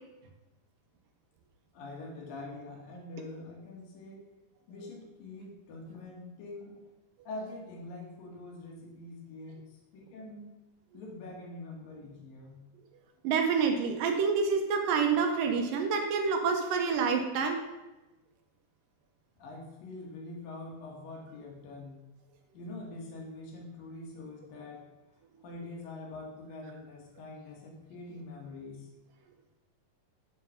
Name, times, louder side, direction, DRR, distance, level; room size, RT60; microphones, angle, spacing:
voice 1, 1.7-4.2 4.7-6.8 7.2-10.5 10.9-12.6 19.4-22.1 22.5-24.9 25.4-28.9, left 2 dB, 70° left, -1 dB, 3.2 m, -44 dB
voice 2, 13.2-17.6, right 5 dB, 75° right, 4 dB, 2.3 m, -27 dB
7.7 x 5.4 x 5.5 m, 1.0 s
omnidirectional pair, 4.2 m